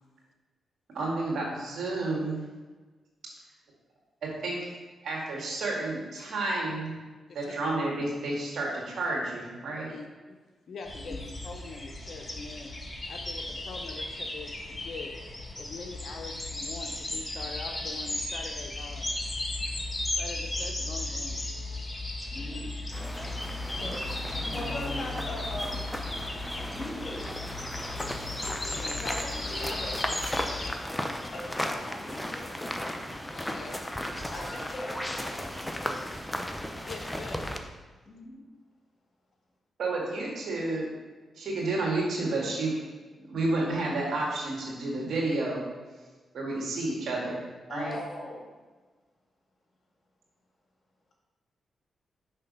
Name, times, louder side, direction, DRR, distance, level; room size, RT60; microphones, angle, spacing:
voice 1, 0.9-2.4 4.2-4.6 5.0-6.9 7.3-9.9 39.8-40.9 41.4-42.8 43.2-45.7 46.3-47.4 47.7-48.0, right 2 dB, 75° right, -2 dB, 1.7 m, -30 dB
voice 2, 10.7-11.2 11.4-12.7 13.1-15.1 15.6-19.1 20.1-21.4 28.4-29.0 33.3-33.8 36.9-37.7 47.8-47.9, left 4 dB, 65° left, 3 dB, 0.6 m, -43 dB
sound 1, 10.9-30.7, left 2 dB, 25° left, 1.0 m, -35 dB
voice 3, 22.3-22.8 23.7-25.9 26.7-27.3 29.0-30.2 31.3-32.5 34.3-36.1 38.1-38.4 47.7-48.4, left 1 dB, 50° left, -1 dB, 1.8 m, -40 dB
sound 2, 22.9-37.6, left 1 dB, 10° left, 0.6 m, -36 dB
5.6 x 3.3 x 5.3 m, 1.3 s
supercardioid pair, 50°, 0 cm